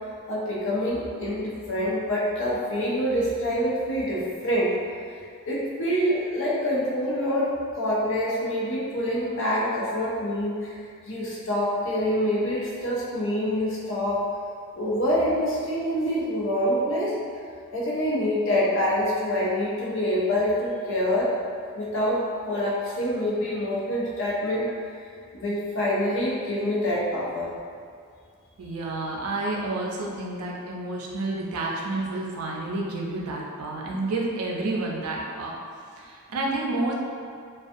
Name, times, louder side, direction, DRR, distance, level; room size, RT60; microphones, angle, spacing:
voice 1, 0.3-4.7 5.5-10.7 11.1-14.3 14.8-17.2 17.7-21.3 21.8-24.7 25.3-27.5, equal, 60° left, -6 dB, 0.6 m, -26 dB
voice 2, 28.6-35.5 36.0-36.9, right 2 dB, 90° right, -2 dB, 0.4 m, -30 dB
2.4 x 2.3 x 2.5 m, 2.2 s
head